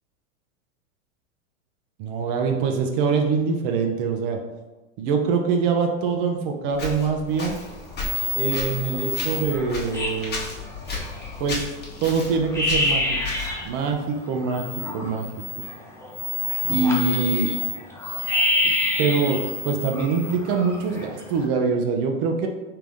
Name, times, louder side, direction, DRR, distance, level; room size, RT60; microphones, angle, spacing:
voice 1, 2.0-4.4 5.0-7.6 8.3-10.4 11.4-11.6 12.0-13.0 13.6-14.7 14.9-15.3 16.7-17.5 19.0-22.5, right 5 dB, 45° right, 3 dB, 0.7 m, -24 dB
Walk footsteps, 6.7-13.7, left 3 dB, 25° left, 1.1 m, -35 dB
sound 1, 7.3-7.7 8.0-11.5 11.9-12.0 12.3-13.7 14.1-21.5, left 2 dB, 5° left, 0.6 m, -27 dB
3.5 x 2.9 x 3.4 m, 1.1 s
hypercardioid pair, 105°, 40 cm